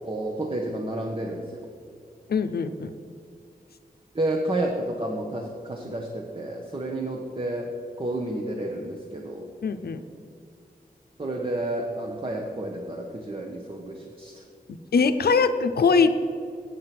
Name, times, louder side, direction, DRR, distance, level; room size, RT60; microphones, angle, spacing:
voice 1, 0.0-1.7 4.1-7.7 8.0-9.5 11.2-14.4, right 1 dB, 35° right, 1 dB, 1.0 m, -30 dB
voice 2, 2.3-2.9 9.6-10.0 14.7-16.1, left 5 dB, 85° left, 10 dB, 0.6 m, -22 dB
8.4 x 7.8 x 6.0 m, 2.4 s
cardioid pair, 55°, 16 cm